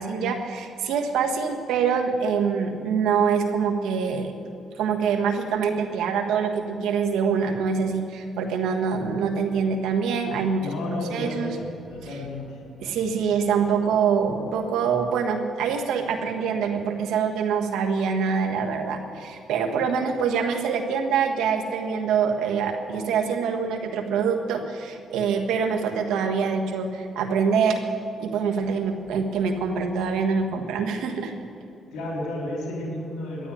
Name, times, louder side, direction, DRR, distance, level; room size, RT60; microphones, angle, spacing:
voice 1, 0.0-4.3 4.8-11.5 12.0-12.1 12.8-27.8 28.2-31.3, right 6 dB, 90° right, 4 dB, 1.5 m, -25 dB
voice 2, 10.5-12.6 31.9-33.5, left 1 dB, 85° left, -2 dB, 3.9 m, -32 dB
12.5 x 9.9 x 10.0 m, 2.8 s
cardioid pair, 90°, 0 cm